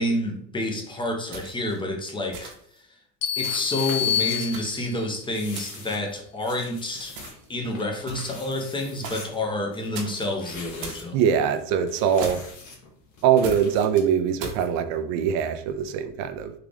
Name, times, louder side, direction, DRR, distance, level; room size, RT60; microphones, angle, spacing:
voice 1, 0.0-2.5 3.4-7.2 7.5-11.2, left 1 dB, 10° left, 2 dB, 0.7 m, -29 dB
sound 1, 1.3-1.8 2.3-2.8 3.4-3.8 4.4-5.0 5.5-6.0 7.2-7.5 8.1-8.5 9.0-9.4 9.9-10.3 10.8-11.1 12.2-12.6 13.4-13.7 14.4-14.7, right 3 dB, 80° right, 1.0 m, -38 dB
sound 2, 3.2-5.1, left 9 dB, 80° left, 0.9 m, -27 dB
sound 3, 3.4-14.1, left 3 dB, 35° left, 1.1 m, -44 dB
voice 2, 11.1-12.4 13.2-16.5, right 8 dB, 55° right, 10 dB, 0.5 m, -23 dB
3.8 x 2.4 x 3.4 m, 0.65 s
supercardioid pair, 110°, 49 cm